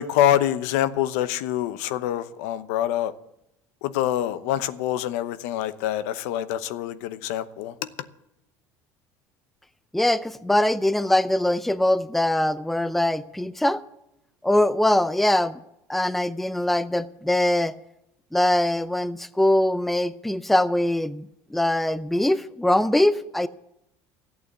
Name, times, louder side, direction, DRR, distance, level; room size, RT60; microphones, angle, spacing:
voice 1, 0.0-3.1 3.8-7.7, left 11 dB, 85° left, 0.9 m, -25 dB
voice 2, 9.9-13.8 14.4-15.6 15.9-17.8 18.3-23.5, left 1 dB, ahead, 0.5 m, -22 dB
14.0 x 8.6 x 8.2 m
cardioid pair, 130°, 8 cm